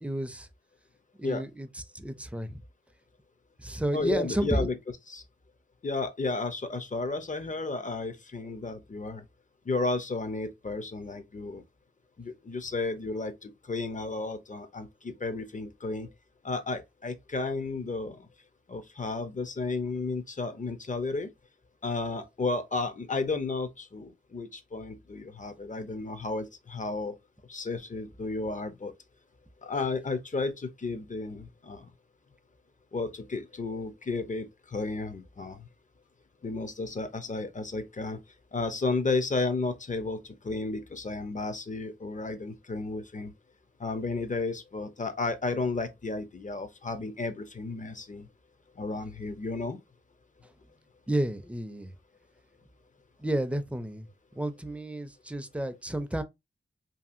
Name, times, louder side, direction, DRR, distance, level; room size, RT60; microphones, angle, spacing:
voice 1, 0.0-0.5 1.2-2.6 3.6-4.7 51.1-51.9 53.2-54.1 54.4-56.2, right 1 dB, 5° right, 0.5 m, -31 dB
voice 2, 3.9-4.8 5.1-5.2 5.8-9.2 9.7-11.6 12.2-16.1 16.4-18.2 18.7-21.3 21.8-27.1 27.5-28.9 29.6-31.8 32.9-35.6 36.4-38.2 38.5-43.3 43.8-48.2 48.8-49.8, left 3 dB, 35° left, 0.6 m, -33 dB
2.7 x 2.7 x 2.5 m
cardioid pair, 45°, 21 cm